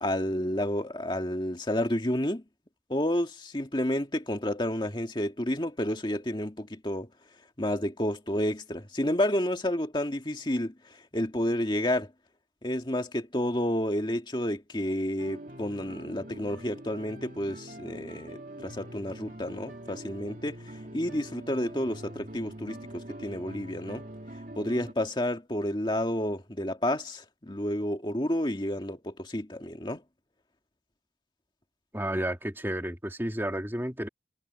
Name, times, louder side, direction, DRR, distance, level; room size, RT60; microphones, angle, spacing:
voice 1, 0.0-2.4 2.9-7.1 7.6-12.1 12.6-24.0 24.6-30.0, left 1 dB, 25° left, 2.0 m, -30 dB
sound 1, 15.2-24.9, right 1 dB, 50° right, 2.3 m, -44 dB
voice 2, 31.9-34.1, right 1 dB, 15° right, 2.4 m, -31 dB
head